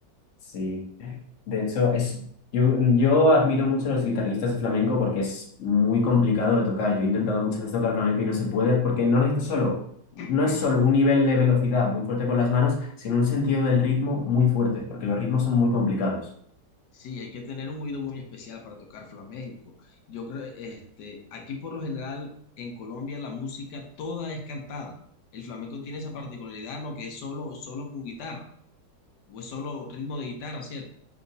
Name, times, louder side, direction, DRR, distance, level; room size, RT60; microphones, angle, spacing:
voice 1, 0.5-1.2 1.5-2.1 2.5-9.8 10.3-16.2, left 4 dB, 50° left, 0 dB, 1.1 m, -23 dB
voice 2, 10.1-10.7 16.9-22.3 22.6-24.9 25.3-28.5 29.3-30.9, left 3 dB, 70° left, 2 dB, 1.3 m, -36 dB
5.5 x 2.9 x 2.7 m, 0.67 s
omnidirectional pair, 1.9 m